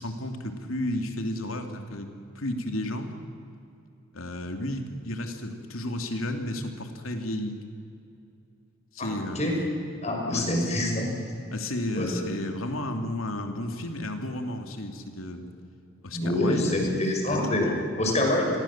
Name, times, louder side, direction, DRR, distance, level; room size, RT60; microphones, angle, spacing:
voice 1, 0.0-3.1 4.1-7.6 8.9-9.4 10.3-10.7 11.5-15.5 16.0-17.9, left 1 dB, 85° left, 5 dB, 2.9 m, -33 dB
voice 2, 9.0-9.6 10.0-11.1 12.0-12.1 16.1-17.7 18.0-18.5, left 1 dB, 30° left, 1 dB, 5.8 m, -26 dB
29.5 x 22.0 x 7.5 m, 2.7 s
head